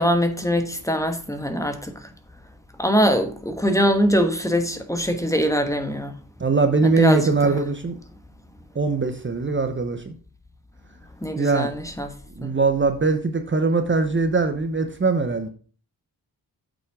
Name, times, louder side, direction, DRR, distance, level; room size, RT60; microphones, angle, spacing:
voice 1, 0.0-1.9 2.8-6.1 7.0-7.2 11.2-12.1 12.4-12.5, equal, 10° left, 1.2 m, -22 dB
voice 2, 6.4-8.0 8.7-10.1 11.4-11.7 12.4-15.5, right 3 dB, 30° right, 0.9 m, -21 dB
8.1 x 6.3 x 4.7 m
wide cardioid pair, 115°, 38 cm